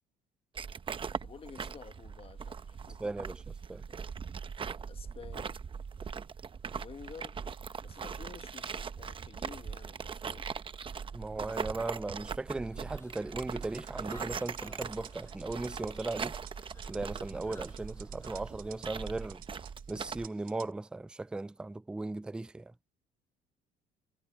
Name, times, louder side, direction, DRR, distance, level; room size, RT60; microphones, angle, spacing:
sound 1, 0.5-20.3, right 6 dB, 30° right, 0.8 m, -41 dB
voice 1, 1.2-3.1 3.9-4.0 4.8-5.6 6.7-7.4 7.8-10.5, left 6 dB, 35° left, 1.4 m, -51 dB
voice 2, 3.0-3.4 3.7-3.8 11.1-16.3 16.9-19.4 19.9-22.7, right 2 dB, 5° right, 0.3 m, -37 dB
Conversation, 12.6-19.3, left 3 dB, 15° left, 7.7 m, -58 dB
sound 2, 13.2-20.7, right 11 dB, 60° right, 5.6 m, -53 dB
cardioid pair, 110°, 17 cm